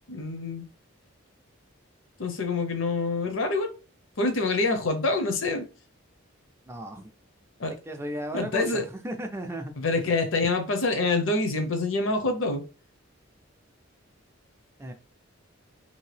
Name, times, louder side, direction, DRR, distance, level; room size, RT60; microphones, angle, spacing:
voice 1, 0.1-0.7 2.2-3.7 4.2-5.6 7.6-7.7 8.3-8.8 9.8-12.6, left 3 dB, 70° left, 0.6 m, -26 dB
voice 2, 6.7-7.1 7.9-9.7 14.8-14.9, right 1 dB, 10° right, 0.3 m, -35 dB
2.7 x 2.6 x 3.2 m
head